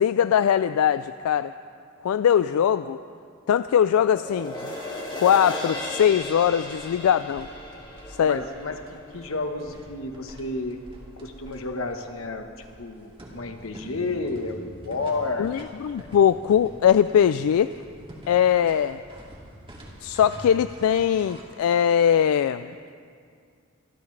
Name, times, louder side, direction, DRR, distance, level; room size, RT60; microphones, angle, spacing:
voice 1, 0.0-1.5 2.0-3.0 3.5-4.5 5.2-7.5 8.1-8.4 15.4-17.7 18.3-19.0 20.0-22.8, left 9 dB, 90° left, 13 dB, 0.3 m, -21 dB
sound 1, 4.0-10.6 11.1-11.2, left 1 dB, 20° left, 2.1 m, -37 dB
sound 2, 6.5-21.4, equal, 25° right, 2.4 m, -46 dB
voice 2, 8.2-10.8 11.2-15.5 16.0-16.1, left 3 dB, 70° left, 5 dB, 1.2 m, -31 dB
25.5 x 13.5 x 3.3 m, 2.3 s
head